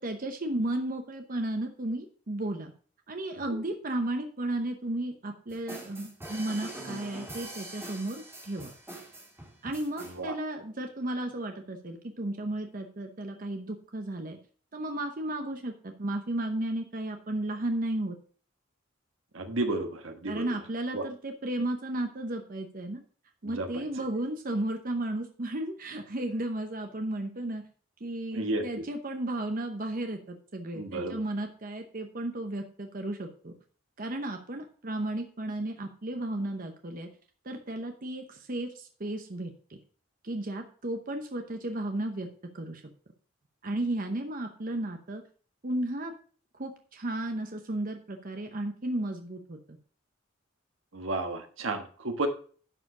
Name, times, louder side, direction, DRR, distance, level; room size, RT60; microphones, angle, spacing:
voice 1, 0.0-2.7 3.1-8.7 9.6-14.4 14.7-18.1 20.3-23.0 23.4-27.6 28.0-33.5 34.0-37.1 37.4-39.8 40.2-42.3 42.5-42.8 43.6-45.2 45.6-46.1 46.6-49.8, right 1 dB, 45° right, 5 dB, 0.8 m, -34 dB
sound 1, 5.5-10.2, right 1 dB, 15° right, 2.5 m, -43 dB
voice 2, 10.0-10.3 19.3-20.5 20.9-21.0 23.4-23.8 28.3-28.8 30.7-31.2 50.9-52.3, right 2 dB, 80° right, 6 dB, 1.4 m, -32 dB
11.0 x 4.9 x 4.8 m, 0.43 s
head